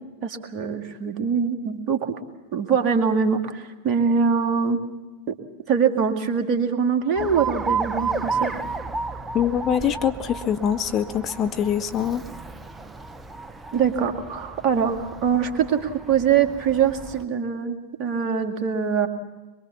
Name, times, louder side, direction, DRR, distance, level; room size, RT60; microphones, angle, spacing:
voice 1, 0.2-2.1 2.5-4.8 5.3-5.4 5.7-8.5 13.7-19.1, right 6 dB, 35° right, 5 dB, 2.2 m, -23 dB
Alarm, 7.2-17.3, right 4 dB, 10° right, 0.8 m, -32 dB
voice 2, 9.3-12.2, left 9 dB, 30° left, 8 dB, 0.9 m, -24 dB
23.5 x 23.0 x 7.1 m, 1.2 s
figure-of-eight pair, 90°, 0 cm